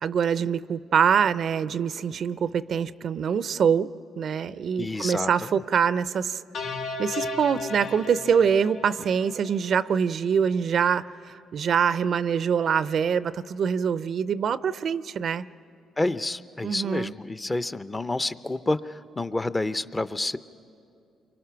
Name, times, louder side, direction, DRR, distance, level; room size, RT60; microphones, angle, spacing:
voice 1, 0.0-6.4 7.0-15.4 16.6-17.1, right 7 dB, 60° right, 16 dB, 0.5 m, -24 dB
voice 2, 4.8-5.3 16.0-20.4, left 2 dB, 20° left, 14 dB, 0.5 m, -29 dB
sound 1, 6.5-9.9, left 3 dB, 85° left, 1.6 m, -35 dB
28.5 x 24.0 x 5.8 m, 2.6 s
cardioid pair, 90°, 0 cm